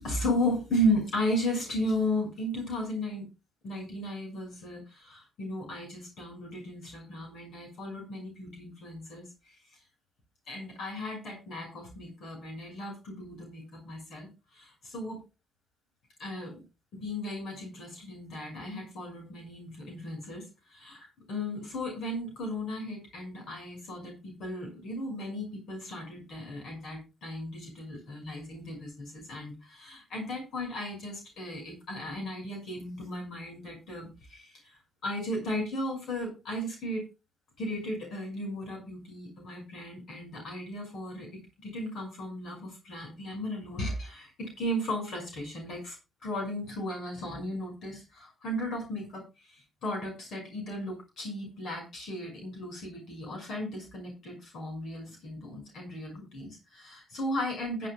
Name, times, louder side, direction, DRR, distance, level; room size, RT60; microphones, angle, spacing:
voice 1, 0.0-3.2 3.6-9.8 10.5-15.2 16.2-16.6 16.9-37.1 37.6-41.3 41.6-46.0 46.2-57.9, left 1 dB, 65° left, 1 dB, 6.1 m, -35 dB
21.0 x 7.8 x 2.3 m, 0.27 s
cardioid pair, 90°, 0 cm